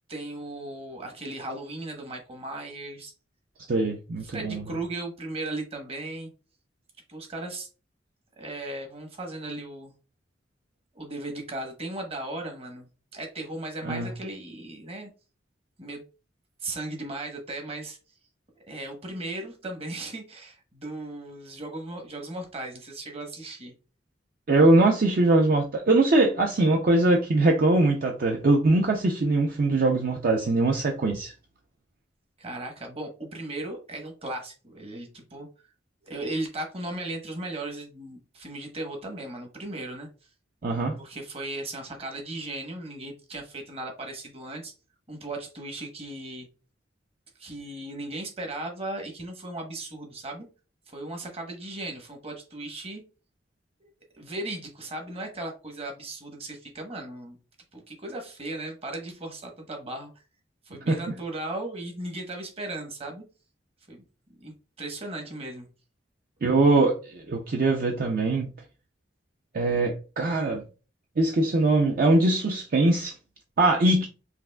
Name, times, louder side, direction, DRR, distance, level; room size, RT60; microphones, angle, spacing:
voice 1, 0.1-3.1 4.2-6.3 7.1-7.7 8.4-9.9 10.9-15.1 15.8-16.0 16.6-18.0 18.7-23.7 32.4-35.5 36.0-40.1 41.0-44.7 45.1-46.5 47.4-50.4 50.9-53.0 53.8-57.4 57.7-60.1 60.7-63.2 63.9-64.0 64.4-65.7, right 2 dB, 35° right, 1.0 m, -36 dB
voice 2, 3.7-4.6 13.8-14.1 24.5-31.3 40.6-41.0 60.9-61.0 66.4-68.5 69.5-70.6 71.2-73.1 73.6-74.1, right 2 dB, 50° right, 0.5 m, -22 dB
5.8 x 2.4 x 2.2 m
head